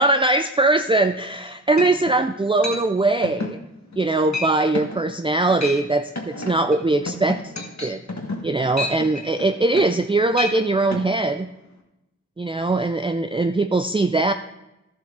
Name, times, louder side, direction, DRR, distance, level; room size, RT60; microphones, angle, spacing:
voice 1, 0.0-3.6 4.0-7.5 7.8-8.0 8.4-11.5 12.4-14.3, right 2 dB, 15° right, 8 dB, 0.4 m, -21 dB
sound 1, 1.3-1.4 1.8-2.2 2.6-2.8 3.2-3.6 3.9-4.1 4.3-4.5 4.7-5.0 5.4-5.8 6.2-10.0 10.3-10.6 10.9-11.0, left 2 dB, 60° left, 1.6 m, -30 dB
11.5 x 7.3 x 3.7 m, 0.94 s
wide cardioid pair, 40°, 31 cm